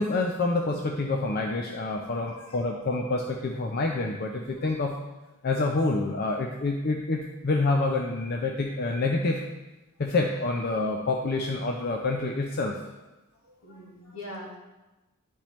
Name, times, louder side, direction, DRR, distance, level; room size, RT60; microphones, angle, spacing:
voice 1, 0.0-5.0 5.4-9.4 10.0-12.8, left 3 dB, 45° left, 2 dB, 0.5 m, -27 dB
voice 2, 2.1-2.6 4.6-4.7 13.4-14.6, left 1 dB, 75° left, -2 dB, 1.5 m, -43 dB
10.0 x 4.5 x 3.1 m, 1.1 s
head